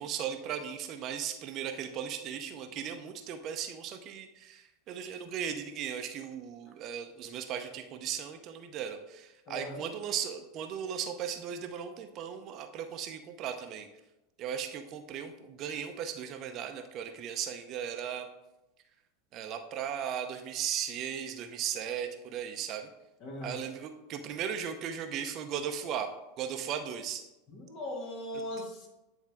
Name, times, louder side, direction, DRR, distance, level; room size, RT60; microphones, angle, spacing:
voice 1, 0.0-13.9 14.4-18.3 19.3-22.9 23.4-27.2, right 8 dB, 45° right, 7 dB, 0.7 m, -37 dB
voice 2, 9.5-9.9 23.2-23.6 27.5-28.9, left 1 dB, 45° left, 0 dB, 2.0 m, -39 dB
9.5 x 3.6 x 3.5 m, 0.97 s
hypercardioid pair, 90°, 0 cm